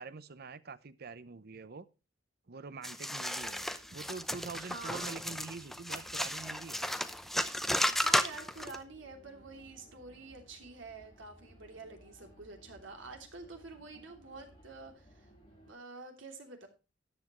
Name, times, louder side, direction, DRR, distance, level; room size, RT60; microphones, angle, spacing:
voice 1, 0.0-1.9 2.5-7.0, right 4 dB, 55° right, 0.7 m, -45 dB
sound 1, 2.8-8.8, equal, ahead, 0.7 m, -34 dB
sound 2, 3.4-15.7, equal, 25° left, 7.0 m, -60 dB
voice 2, 4.6-5.2 7.8-15.3 15.6-16.7, right 3 dB, 80° right, 3.0 m, -48 dB
13.0 x 9.6 x 3.1 m
head